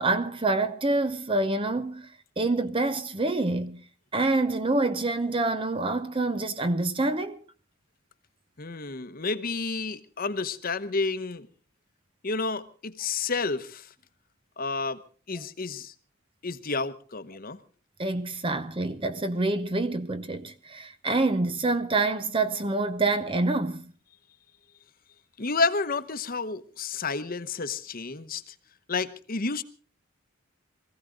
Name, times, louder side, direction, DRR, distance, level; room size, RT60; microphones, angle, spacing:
voice 1, 0.0-2.1 2.4-3.8 4.1-7.4 18.0-23.9, right 2 dB, 25° right, 0.7 m, -26 dB
voice 2, 8.6-11.5 12.2-13.9 14.6-15.0 15.3-15.9 16.4-17.6 25.4-28.5 28.9-29.6, left 4 dB, 45° left, 1.0 m, -30 dB
23.0 x 15.5 x 3.8 m
head